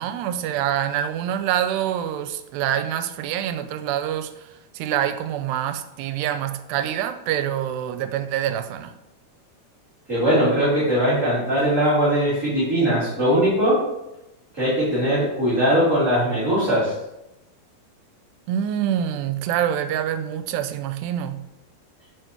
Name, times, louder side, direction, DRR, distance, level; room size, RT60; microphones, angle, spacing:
voice 1, 0.0-8.9 18.5-21.4, right 10 dB, 85° right, 10 dB, 2.7 m, -26 dB
voice 2, 10.1-13.8 14.5-16.9, equal, 20° right, -11 dB, 3.6 m, -20 dB
9.2 x 6.7 x 4.5 m, 0.90 s
omnidirectional pair, 4.7 m